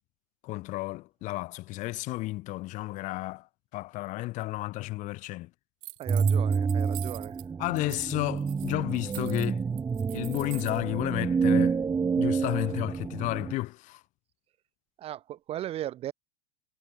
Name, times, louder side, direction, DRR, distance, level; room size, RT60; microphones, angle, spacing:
voice 1, 0.4-3.5 3.7-5.5 7.6-9.6 10.1-11.8 12.2-14.0, left 19 dB, 45° left, 1.1 m, -32 dB
sound 1, 5.8-7.4 7.8-8.1 8.4-10.8, right 26 dB, 55° right, 1.9 m, -44 dB
voice 2, 6.0-7.3 15.0-16.1, right 12 dB, 35° right, 1.1 m, -37 dB
sound 2, 6.1-13.5, right 5 dB, 15° right, 1.8 m, -28 dB
supercardioid pair, 125°, 17 cm